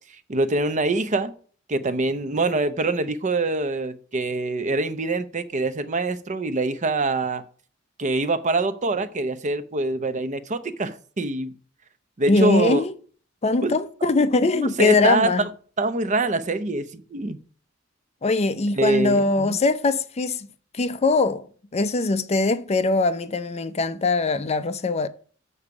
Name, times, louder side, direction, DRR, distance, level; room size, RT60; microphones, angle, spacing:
voice 1, 0.3-1.3 1.7-7.4 8.0-11.5 12.2-12.8 13.6-13.7 14.5-15.5 15.8-17.4 18.7-19.6, right 2 dB, 35° right, 0.7 m, -24 dB
voice 2, 12.3-12.9 13.4-15.4 18.2-20.5 20.7-21.4 21.7-25.1, left 3 dB, 30° left, 0.5 m, -21 dB
7.0 x 6.8 x 4.7 m
head